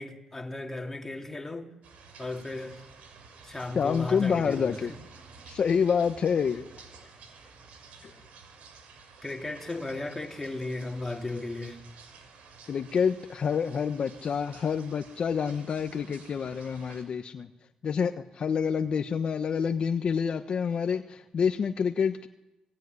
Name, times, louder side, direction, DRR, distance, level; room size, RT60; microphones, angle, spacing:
voice 1, 0.0-1.7 2.2-2.8 3.4-5.0 9.2-11.8, left 2 dB, 15° left, 3.6 m, -35 dB
sound 1, 1.8-17.0, right 5 dB, 90° right, 5.9 m, -51 dB
voice 2, 3.7-4.9 5.5-6.6 8.0-8.1 12.7-17.5 17.8-22.3, left 6 dB, 50° left, 1.2 m, -27 dB
26.5 x 20.0 x 9.8 m
cardioid pair, 125°, 2 cm